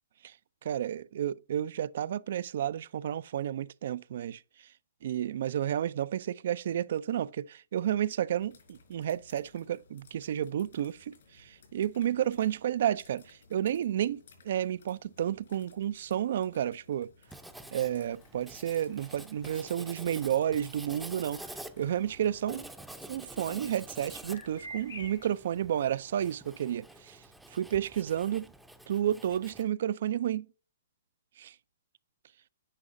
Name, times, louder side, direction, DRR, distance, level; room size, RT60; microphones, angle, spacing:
voice 1, 0.6-4.7 5.0-17.1 17.7-22.7 23.1-27.2 27.5-28.5 28.9-30.5 31.4-31.6, right 10 dB, 60° right, 0.3 m, -31 dB
sound 1, 8.4-23.6, left 4 dB, 70° left, 3.9 m, -60 dB
Writing, 17.3-29.7, right 1 dB, 5° right, 0.5 m, -48 dB
sound 2, 20.3-25.3, equal, 85° left, 2.3 m, -48 dB
9.8 x 4.9 x 2.6 m
hypercardioid pair, 135°, 0 cm